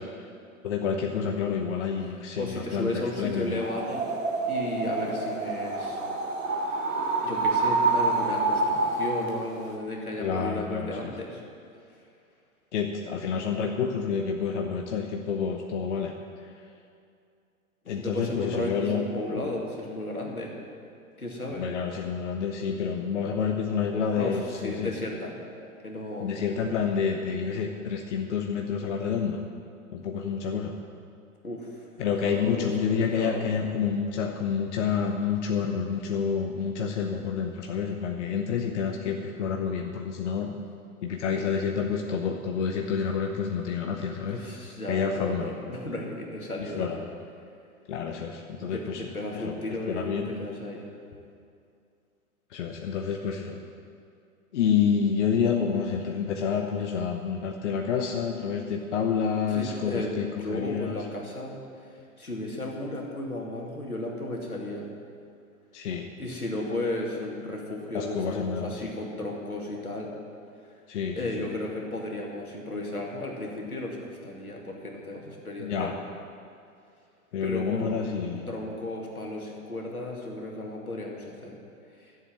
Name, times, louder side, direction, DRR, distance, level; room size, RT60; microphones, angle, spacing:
voice 1, 0.6-3.6 10.2-11.1 12.7-16.1 16.4-16.5 17.9-19.0 21.6-24.9 26.2-29.4 29.9-30.8 32.0-40.6 41.0-44.4 44.9-45.5 46.7-47.0 47.9-49.0 49.3-50.3 52.5-53.6 54.5-61.0 65.7-66.1 67.9-68.9 70.9-71.5 75.6-75.9 77.3-78.5, left 6 dB, 55° left, 3 dB, 1.0 m, -28 dB
voice 2, 2.4-4.1 4.4-6.0 6.7-6.9 7.2-11.4 17.9-20.6 21.2-21.6 24.1-25.3 25.8-26.4 31.4-31.8 32.2-33.4 44.3-46.9 48.6-50.8 59.5-61.9 62.2-64.9 66.2-70.1 70.7-70.8 71.2-75.9 77.4-81.6 81.9-82.1, left 1 dB, 85° left, -1 dB, 2.4 m, -34 dB
sound 1, 3.5-9.3, right 3 dB, 65° right, 2.0 m, -27 dB
13.0 x 7.7 x 7.6 m, 2.4 s
figure-of-eight pair, 105°, 43 cm